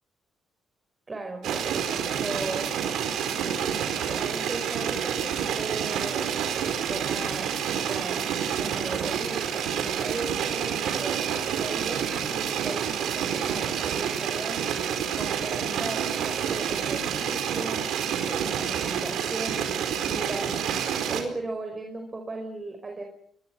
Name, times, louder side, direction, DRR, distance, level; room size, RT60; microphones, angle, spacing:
voice 1, 1.1-2.8 3.2-6.3 6.9-14.7 15.2-17.9 18.2-23.0, right 2 dB, 25° right, 4 dB, 4.9 m, -37 dB
sound 1, 1.4-21.2, right 8 dB, 80° right, 4.7 m, -28 dB
29.5 x 23.5 x 6.1 m, 0.66 s
cardioid pair, 90°, 0 cm